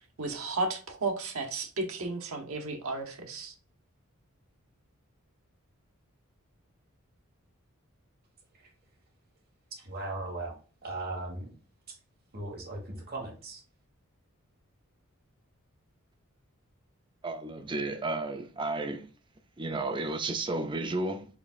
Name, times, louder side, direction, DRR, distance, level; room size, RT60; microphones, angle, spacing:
voice 1, 0.2-3.5, right 3 dB, 75° right, 1.0 m, -33 dB
voice 2, 9.7-11.5 11.9-12.0 12.3-13.6, right 2 dB, 45° right, 1.6 m, -38 dB
voice 3, 17.2-19.1 19.6-21.3, right 2 dB, 20° right, 0.4 m, -32 dB
4.9 x 3.5 x 2.4 m
head